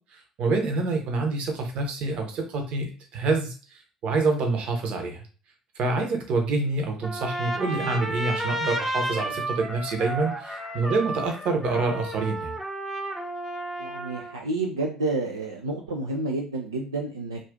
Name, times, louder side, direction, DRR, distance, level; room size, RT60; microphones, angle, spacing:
voice 1, 0.4-5.2 5.8-12.5, right 3 dB, 50° right, 3 dB, 0.8 m, -27 dB
Trumpet, 7.0-14.4, right 1 dB, ahead, 0.7 m, -32 dB
voice 2, 13.8-17.4, right 2 dB, 85° right, 0 dB, 0.3 m, -29 dB
2.4 x 2.4 x 3.5 m, 0.37 s
figure-of-eight pair, 55°, 2 cm